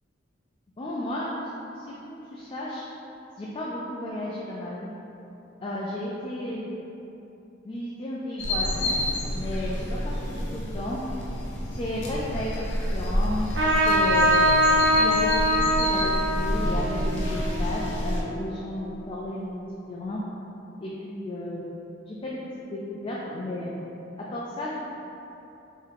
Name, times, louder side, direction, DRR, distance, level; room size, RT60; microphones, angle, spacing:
voice 1, 0.8-2.8 3.4-4.9 5.6-6.7 7.6-9.0 9.3-11.0 11.7-14.3 15.0-20.2 20.8-21.6 22.1-22.4 22.7-23.7 24.2-24.8, left 1 dB, 30° left, -5 dB, 0.3 m, -33 dB
sound 1, 8.4-18.2, left 1 dB, 70° left, 0.6 m, -29 dB
Trumpet, 13.5-18.5, equal, 65° right, 0.7 m, -23 dB
3.5 x 2.7 x 3.5 m, 2.9 s
head